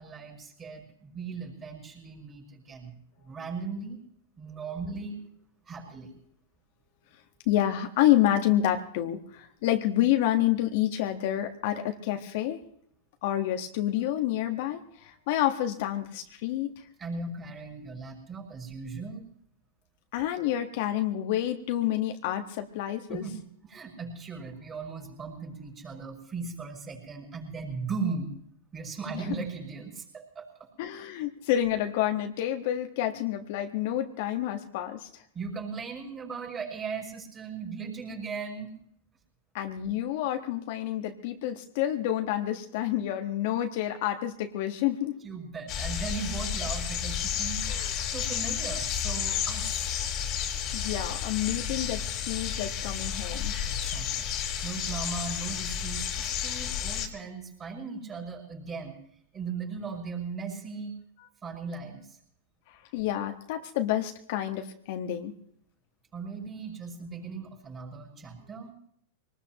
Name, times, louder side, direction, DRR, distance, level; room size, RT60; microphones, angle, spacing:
voice 1, 0.0-2.9 3.2-4.0 4.4-5.2 5.7-6.1 17.0-19.2 23.1-23.4 23.6-28.3 28.7-30.7 35.3-38.7 45.2-47.7 48.1-50.0 53.6-54.3 54.6-59.0 59.3-60.9 61.4-62.2 66.1-68.7, right 4 dB, 25° right, 0 dB, 5.8 m, -38 dB
voice 2, 7.4-12.6 13.2-16.7 20.1-23.2 29.1-29.3 30.8-35.1 39.5-45.2 47.6-48.1 50.7-53.5 62.7-65.3, left 12 dB, 60° left, 5 dB, 1.4 m, -28 dB
sound 1, 45.7-57.1, left 8 dB, 45° left, 2.7 m, -31 dB
23.5 x 19.5 x 3.0 m, 0.67 s
hypercardioid pair, 115°, 0 cm